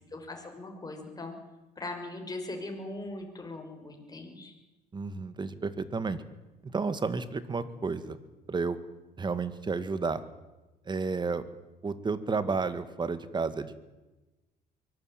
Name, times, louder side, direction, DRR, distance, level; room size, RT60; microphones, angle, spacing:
voice 1, 0.1-1.3 1.8-4.5, left 2 dB, 20° left, 3 dB, 5.9 m, -40 dB
voice 2, 4.9-6.2 6.6-8.2 8.5-8.8 9.2-10.2 10.9-11.4 11.8-13.8, right 4 dB, 25° right, 13 dB, 1.9 m, -31 dB
23.5 x 18.5 x 9.1 m, 1.1 s
cardioid pair, 110°, 17 cm